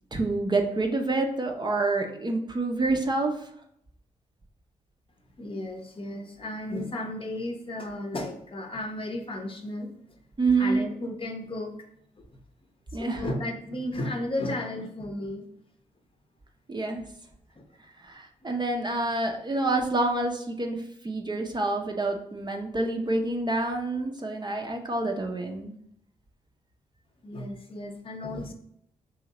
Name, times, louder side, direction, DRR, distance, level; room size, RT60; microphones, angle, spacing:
voice 1, 0.1-3.3 10.4-10.8 12.9-13.2 16.7-17.0 18.0-25.7, right 2 dB, 30° right, 3 dB, 0.6 m, -27 dB
voice 2, 5.4-9.9 10.6-11.7 12.2-12.3 13.0-15.4 17.6-17.7 27.2-28.5, left 1 dB, 35° left, 3 dB, 0.7 m, -34 dB
3.0 x 2.8 x 3.8 m, 0.72 s
hypercardioid pair, 45°, 16 cm